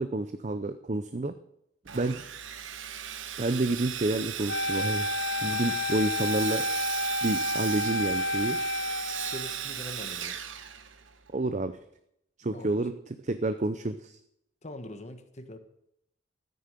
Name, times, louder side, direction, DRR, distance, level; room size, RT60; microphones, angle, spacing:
voice 1, 0.0-1.3 1.9-2.2 3.4-5.1 5.4-6.7 7.2-8.6 11.3-11.7 12.4-14.2, right 2 dB, 40° right, 10 dB, 0.6 m, -29 dB
Sawing, 1.9-11.3, right 9 dB, 85° right, 1.1 m, -37 dB
Wind instrument woodwind instrument, 4.5-9.6, left 2 dB, 70° left, 0.8 m, -30 dB
voice 2, 9.2-10.4 12.5-12.7 14.6-15.6, left 1 dB, 35° left, 8 dB, 1.3 m, -43 dB
13.5 x 9.5 x 6.7 m, 0.75 s
head